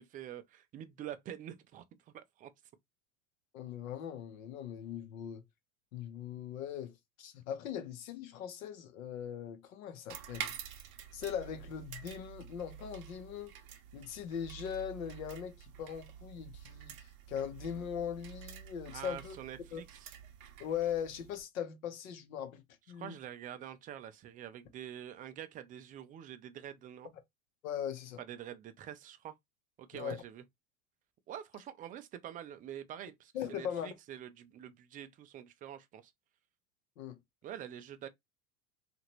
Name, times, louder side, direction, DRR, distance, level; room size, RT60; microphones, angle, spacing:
voice 1, 0.0-1.8 2.1-2.5 18.9-20.1 22.9-27.1 28.2-29.3 29.8-30.4 31.3-36.1 37.4-38.1, right 10 dB, 20° right, 0.3 m, -46 dB
voice 2, 3.5-5.4 5.9-10.5 11.1-13.5 13.9-19.4 19.7-19.8 20.6-22.6 22.9-23.1 27.6-28.2 29.9-30.2 33.3-33.9 37.0-37.2, left 9 dB, 70° left, 0.9 m, -40 dB
sound 1, 10.1-21.4, right 9 dB, 50° right, 0.7 m, -48 dB
2.9 x 2.5 x 2.9 m
hypercardioid pair, 85°, 42 cm